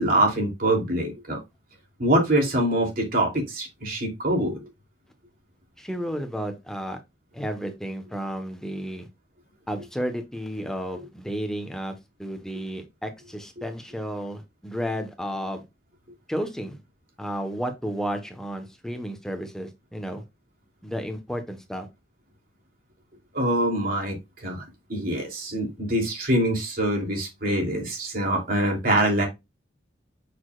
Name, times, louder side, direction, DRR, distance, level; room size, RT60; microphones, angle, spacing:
voice 1, 0.0-1.4 2.0-4.6 23.3-24.6 24.9-29.3, right 1 dB, 55° right, 3.1 m, -24 dB
voice 2, 5.8-7.0 7.3-9.1 9.7-15.6 16.3-16.8 17.2-20.2 20.8-21.9, equal, 5° left, 1.2 m, -32 dB
7.1 x 6.5 x 2.4 m
head